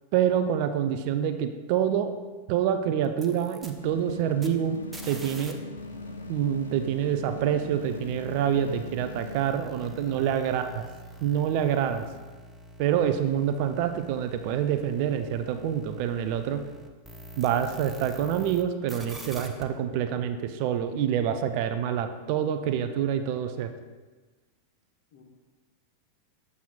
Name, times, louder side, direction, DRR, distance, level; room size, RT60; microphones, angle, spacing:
voice 1, 0.1-2.1 2.5-4.8 5.1-5.6 6.3-10.8 11.2-12.1 12.8-16.6 17.4-23.7, right 9 dB, 45° right, 8 dB, 0.5 m, -26 dB
sound 1, 3.0-5.5 5.8-18.6 18.9-19.6, right 1 dB, 10° right, 0.7 m, -46 dB
sound 2, 3.8-9.4, left 3 dB, 75° left, 0.4 m, -40 dB
voice 2, 9.8-10.5 25.1-25.2, left 3 dB, 50° left, 0 dB, 1.3 m, -46 dB
7.4 x 6.9 x 2.4 m, 1.3 s
figure-of-eight pair, 90°, 0 cm